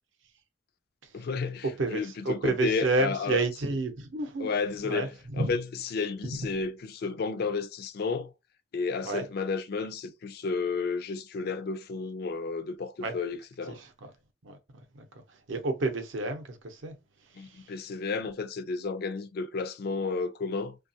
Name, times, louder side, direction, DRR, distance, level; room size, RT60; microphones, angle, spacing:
voice 1, 1.1-3.4 4.4-8.3 8.7-13.8 17.4-20.8, left 4 dB, 50° left, 0.3 m, -32 dB
voice 2, 1.8-4.5 4.8-5.5 6.2-6.4 9.0-9.2 13.0-13.1 13.7-13.9 14.4-14.6 14.9-15.1 15.5-17.0 17.4-17.6, right 3 dB, 70° right, 0.6 m, -30 dB
2.7 x 2.3 x 2.7 m
head